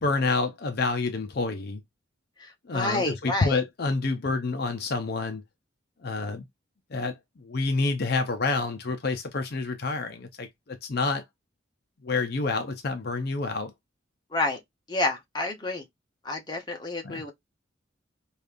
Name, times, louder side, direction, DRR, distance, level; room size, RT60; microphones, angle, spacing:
voice 1, 0.0-1.8 2.7-5.4 6.0-6.4 6.9-11.2 12.0-13.7 17.0-17.2, left 3 dB, 50° left, 0.5 m, -28 dB
voice 2, 2.4-3.6 14.3-14.6 14.9-15.8 16.2-17.3, left 2 dB, 20° left, 0.9 m, -29 dB
5.0 x 2.4 x 2.5 m
head